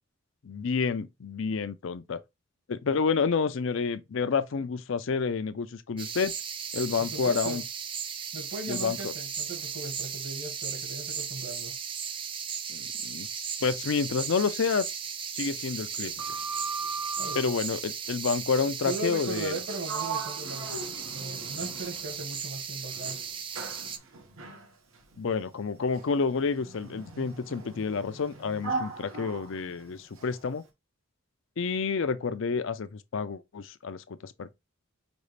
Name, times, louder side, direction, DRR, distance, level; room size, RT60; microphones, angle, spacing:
voice 1, 0.4-2.2 2.7-6.3 6.7-7.6 8.7-9.1 12.7-13.3 13.6-14.9 15.3-16.1 17.3-19.5 25.2-30.6 31.6-34.5, left 5 dB, 65° left, 0.5 m, -29 dB
sound 1, 6.0-24.0, right 7 dB, 25° right, 0.3 m, -36 dB
voice 2, 7.0-7.6 8.3-11.7 17.2-17.5 18.8-23.2, right 2 dB, 65° right, 1.8 m, -38 dB
Sliding door, 15.9-17.5 19.4-19.6 19.9-22.3 22.9-30.4, right 4 dB, 80° right, 1.0 m, -39 dB
5.2 x 2.4 x 3.2 m
head